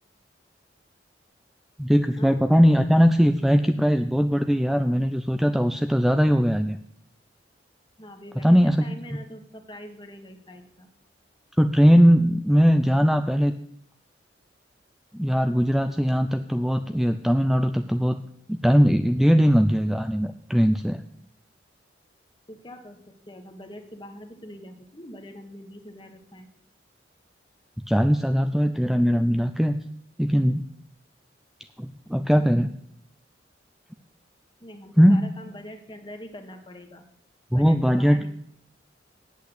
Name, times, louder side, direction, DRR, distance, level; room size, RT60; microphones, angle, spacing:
voice 1, 1.8-6.8 8.4-8.8 11.6-13.5 15.1-18.2 18.5-21.0 27.9-29.8 30.2-30.7 31.8-32.7 35.0-35.3 37.5-38.3, equal, ahead, 8 dB, 0.4 m, -20 dB
voice 2, 8.0-10.9 22.5-26.5 34.6-37.0 37.5-38.3, left 1 dB, 25° left, 6 dB, 1.5 m, -43 dB
8.5 x 8.4 x 8.1 m, 0.70 s
head